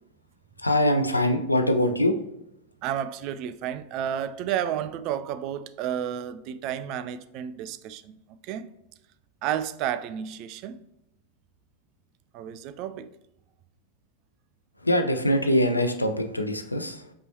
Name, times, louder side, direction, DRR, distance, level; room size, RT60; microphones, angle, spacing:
voice 1, 0.6-2.1 14.8-17.1, left 1 dB, 85° left, 0.5 m, -23 dB
voice 2, 2.8-8.2 8.4-8.7 9.4-10.8 12.3-13.1, right 10 dB, 40° right, 0.3 m, -31 dB
5.3 x 3.1 x 2.7 m
figure-of-eight pair, 90°, 0 cm